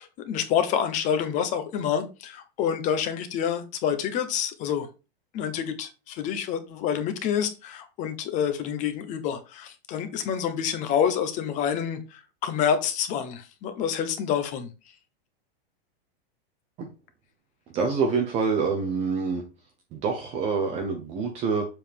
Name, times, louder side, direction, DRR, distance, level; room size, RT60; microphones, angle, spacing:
voice 1, 0.0-4.9 5.3-14.7, left 8 dB, 25° left, 0.8 m, -28 dB
voice 2, 17.7-19.4 19.9-21.7, right 5 dB, 20° right, 0.7 m, -26 dB
7.2 x 4.7 x 3.5 m
supercardioid pair, 165°, 32 cm